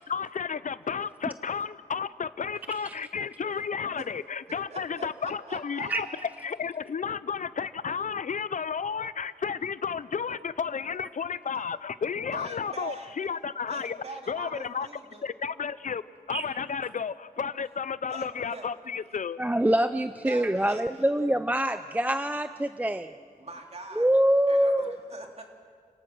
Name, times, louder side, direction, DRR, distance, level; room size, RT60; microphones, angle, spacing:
voice 1, 0.0-6.1 6.4-14.0 14.3-14.9 15.2-16.0 16.3-19.4, left 6 dB, 60° left, 16 dB, 0.5 m, -32 dB
voice 2, 4.7-6.4 12.3-13.2 13.7-15.2 18.1-18.7 19.1-19.2 20.2-20.8 23.4-24.1 24.5-25.4, right 3 dB, 45° right, 3 dB, 2.6 m, -43 dB
voice 3, 19.4-23.1 24.0-25.0, right 1 dB, 10° right, 11 dB, 0.5 m, -25 dB
28.5 x 18.5 x 6.1 m, 2.1 s
wide cardioid pair, 125°, 15 cm